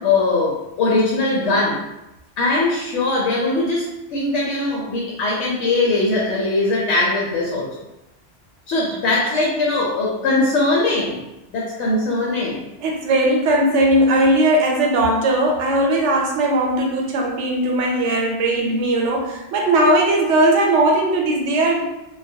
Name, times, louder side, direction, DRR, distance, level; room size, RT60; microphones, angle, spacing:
voice 1, 0.0-1.8 2.4-7.7 8.7-11.2 11.5-12.6, left 2 dB, 85° left, -4 dB, 0.9 m, -20 dB
voice 2, 12.8-21.8, right 1 dB, 90° right, 0 dB, 0.9 m, -18 dB
2.2 x 2.1 x 2.6 m, 0.95 s
omnidirectional pair, 1.2 m